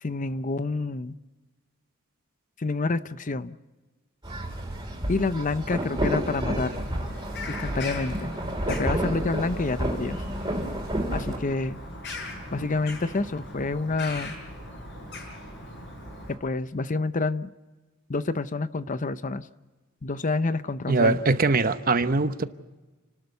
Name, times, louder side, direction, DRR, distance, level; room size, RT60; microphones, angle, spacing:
voice 1, 0.0-1.1 2.6-3.6 5.1-6.7 7.5-8.3 8.7-10.2 11.1-11.8 12.5-14.4 16.3-17.5 18.1-19.5 20.0-21.2, left 3 dB, 35° left, 13 dB, 0.7 m, -28 dB
sound 1, 4.2-11.4, right 1 dB, 20° right, 4.8 m, -30 dB
Bird vocalization bird call bird song, 6.5-16.3, left 2 dB, 55° left, 7.0 m, -39 dB
voice 2, 20.9-22.4, right 3 dB, 40° right, 11 dB, 0.9 m, -22 dB
30.0 x 12.5 x 8.0 m, 1.2 s
head